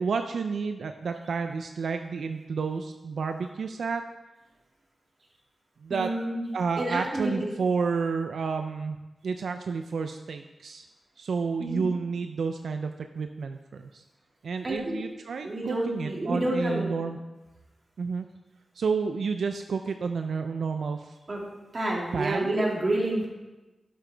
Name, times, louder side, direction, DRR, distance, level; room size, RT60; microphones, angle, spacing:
voice 1, 0.0-4.0 5.8-6.1 6.5-9.0 9.2-10.9 11.2-14.0 14.4-17.2 18.0-18.3 18.8-21.2 22.1-22.6, right 5 dB, 90° right, 7 dB, 0.4 m, -30 dB
voice 2, 5.9-6.4 6.8-7.4 11.6-11.8 14.6-15.0 15.4-16.9 21.3-21.4 21.7-23.3, right 1 dB, 40° right, -2 dB, 2.2 m, -28 dB
12.0 x 7.6 x 3.4 m, 1.1 s
wide cardioid pair, 100°, 0 cm